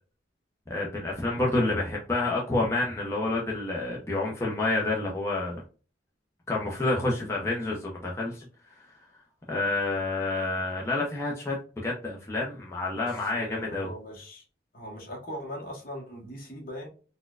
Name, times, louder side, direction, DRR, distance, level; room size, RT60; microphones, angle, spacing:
voice 1, 0.7-5.6 6.5-8.5 9.5-11.6 11.8-13.9, left 2 dB, 15° left, -3 dB, 0.6 m, -28 dB
voice 2, 13.0-14.4 14.7-16.9, equal, 50° left, 0 dB, 1.1 m, -40 dB
4.2 x 2.2 x 2.3 m, 0.37 s
head